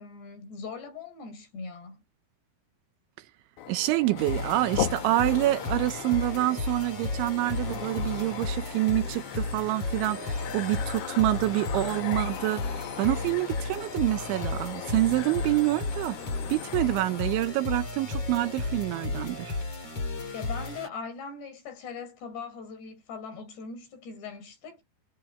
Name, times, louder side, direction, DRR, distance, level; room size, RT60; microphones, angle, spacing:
voice 1, 0.0-2.0 20.3-24.8, left 5 dB, 60° left, 7.0 m, -40 dB
sound 1, 3.6-17.5, left 11 dB, 85° left, 1.7 m, -39 dB
voice 2, 3.7-16.2 16.5-19.6, right 17 dB, 80° right, 3.2 m, -27 dB
sound 2, 4.2-20.9, left 3 dB, 30° left, 5.9 m, -34 dB
omnidirectional pair, 5.5 m